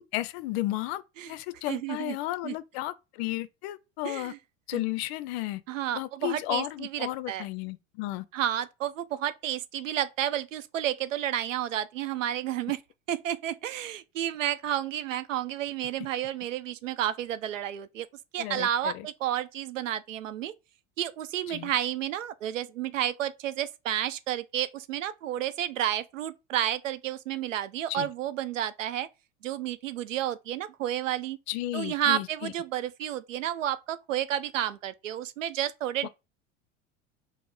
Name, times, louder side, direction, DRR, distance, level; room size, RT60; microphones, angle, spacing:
voice 1, 0.0-4.3 4.7-5.6 5.9-8.3 18.4-19.1 21.5-21.7 27.9-28.1 31.5-32.5 36.0-36.1, left 16 dB, 55° left, 0.5 m, -33 dB
voice 2, 1.7-2.2 2.4-2.5 4.0-4.4 4.7-4.8 5.7-7.5 8.3-12.8 13.1-18.1 18.3-20.5 21.0-29.1 29.4-31.4 31.7-36.1, right 11 dB, 85° right, 0.5 m, -31 dB
5.1 x 2.0 x 3.1 m
hypercardioid pair, 80°, 37 cm